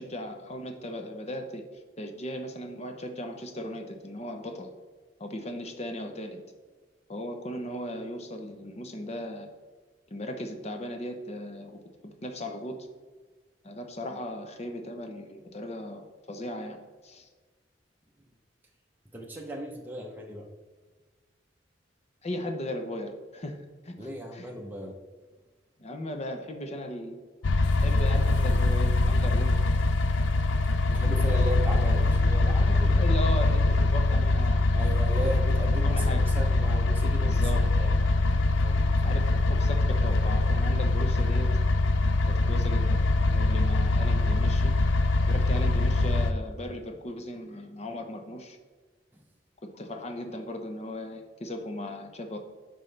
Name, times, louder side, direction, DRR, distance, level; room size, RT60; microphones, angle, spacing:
voice 1, 0.0-1.6 2.0-4.7 5.2-6.4 7.1-9.5 10.1-12.9 13.6-17.3 22.2-24.5 25.8-27.2 27.8-29.5 31.0-31.3 32.7-34.7 35.8-36.2 37.2-37.7 39.0-41.5 42.2-44.7 45.3-48.6 49.7-52.4, left 1 dB, 35° left, 6 dB, 0.8 m, -37 dB
voice 2, 19.1-20.4 24.0-25.0 30.9-33.1 34.7-38.1 38.6-39.2, equal, 10° right, -1 dB, 0.8 m, -37 dB
sound 1, 27.4-46.3, left 2 dB, 90° left, 0.5 m, -23 dB
9.4 x 5.5 x 3.3 m, 1.3 s
head